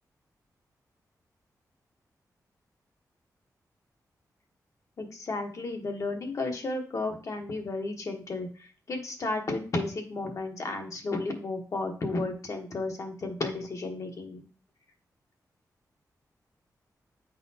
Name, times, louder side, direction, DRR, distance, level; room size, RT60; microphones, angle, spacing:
voice 1, 5.0-14.4, left 2 dB, 55° left, 3 dB, 1.2 m, -33 dB
8.2 x 4.1 x 2.8 m, 0.40 s
wide cardioid pair, 110°, 7 cm